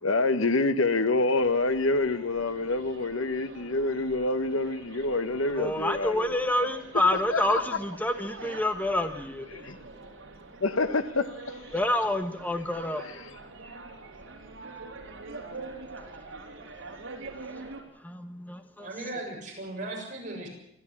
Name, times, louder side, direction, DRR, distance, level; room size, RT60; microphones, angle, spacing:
voice 1, 0.0-6.4 7.3-7.6 9.6-9.8 10.6-11.5, left 2 dB, 80° left, 1.2 m, -27 dB
sound 1, 1.4-17.8, right 3 dB, 70° right, 4.0 m, -45 dB
voice 2, 5.6-9.6 11.7-13.2 18.0-18.9, left 1 dB, 10° left, 1.2 m, -28 dB
voice 3, 18.8-20.5, right 2 dB, 40° right, 7.5 m, -37 dB
26.5 x 12.5 x 8.6 m
head